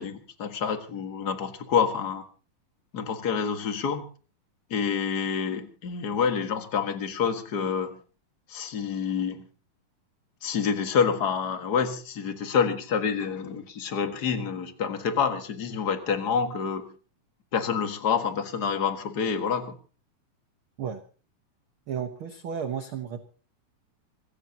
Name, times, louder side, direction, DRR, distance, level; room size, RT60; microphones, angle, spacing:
voice 1, 0.0-2.2 2.9-4.1 4.7-8.0 8.5-9.4 10.4-16.9 17.5-19.7, left 6 dB, 40° left, 8 dB, 1.5 m, -27 dB
voice 2, 21.9-23.2, right 7 dB, 75° right, 8 dB, 1.2 m, -33 dB
26.5 x 15.0 x 2.9 m, 0.37 s
omnidirectional pair, 4.1 m